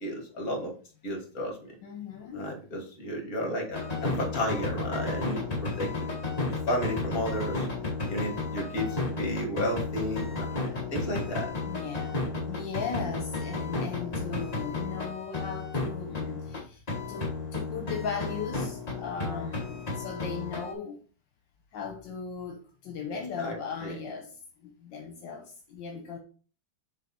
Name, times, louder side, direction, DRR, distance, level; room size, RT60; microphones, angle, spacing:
voice 1, 0.0-0.7 1.0-1.6 2.3-6.1 6.5-7.7 8.1-11.5 23.4-24.0, equal, 50° left, 2.4 m, -33 dB
voice 2, 1.8-2.5 11.7-21.0 21.7-26.2, left 6 dB, 80° left, 1.6 m, -38 dB
sound 1, 3.7-16.6 16.9-20.7, left 3 dB, 25° left, 1.3 m, -33 dB
7.0 x 4.0 x 4.2 m
omnidirectional pair, 2.0 m